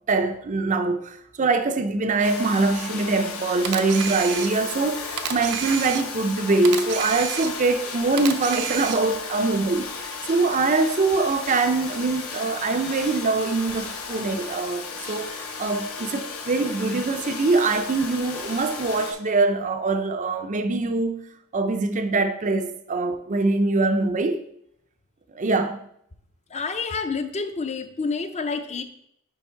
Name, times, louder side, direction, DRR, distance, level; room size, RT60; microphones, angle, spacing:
voice 1, 0.1-21.3 21.5-24.4 25.3-25.8, right 3 dB, 35° right, 0.5 m, -23 dB
Domestic sounds home sounds, 2.2-19.1, left 5 dB, 70° left, 1.2 m, -35 dB
Camera, 3.6-4.8 5.2-6.3 6.6-7.8 8.2-9.2, right 9 dB, 85° right, 0.7 m, -30 dB
voice 2, 26.5-28.8, left 4 dB, 30° left, 0.6 m, -28 dB
10.0 x 3.4 x 4.5 m
head